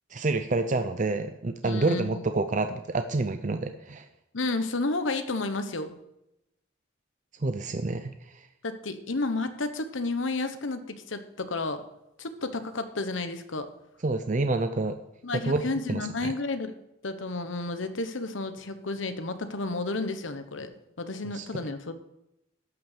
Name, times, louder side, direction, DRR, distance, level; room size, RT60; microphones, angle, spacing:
voice 1, 0.1-4.1 7.4-8.5 14.0-15.0 15.3-15.6 15.9-16.3 21.3-21.4, right 3 dB, 40° right, 8 dB, 0.5 m, -28 dB
voice 2, 1.6-2.2 4.3-6.0 8.6-11.8 12.2-13.7 15.2-16.7 17.0-20.7 21.0-21.9, left 3 dB, 80° left, 9 dB, 1.1 m, -31 dB
12.5 x 6.3 x 6.7 m, 0.87 s
head